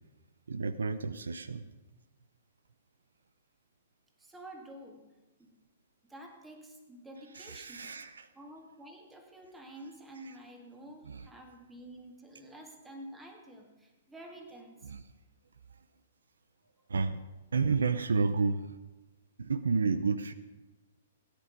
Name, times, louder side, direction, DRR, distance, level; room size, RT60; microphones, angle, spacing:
voice 1, 0.5-1.6 7.3-8.3 10.3-10.4 11.1-11.3 14.8-15.0 16.9-17.2 17.5-18.8 19.4-20.3, right 4 dB, 85° right, 14 dB, 0.7 m, -31 dB
voice 2, 4.2-5.1 5.4-5.6 6.0-8.0 8.3-14.9, right 1 dB, 10° right, 3 dB, 2.0 m, -49 dB
16.5 x 10.0 x 5.3 m, 1.1 s
hypercardioid pair, 125°, 0 cm